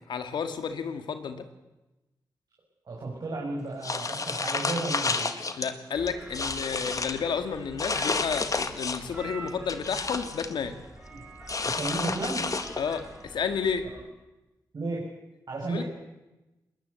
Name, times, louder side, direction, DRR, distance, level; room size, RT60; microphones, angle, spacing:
voice 1, 0.1-1.4 5.6-10.8 12.8-13.9 15.7-15.8, left 6 dB, 85° left, 8 dB, 2.0 m, -31 dB
voice 2, 2.9-5.3 11.1-11.2 11.6-12.5 14.7-15.1 15.5-15.8, right 2 dB, 60° right, -3 dB, 6.4 m, -33 dB
sound 1, 3.8-5.7 6.1-7.2 7.8-9.1 9.5-10.5 11.5-13.0, left 4 dB, 45° left, 1.9 m, -30 dB
sound 2, 5.9-14.1, right 2 dB, 15° right, 7.3 m, -46 dB
21.0 x 20.0 x 8.3 m, 1.0 s
cardioid pair, 55°, 8 cm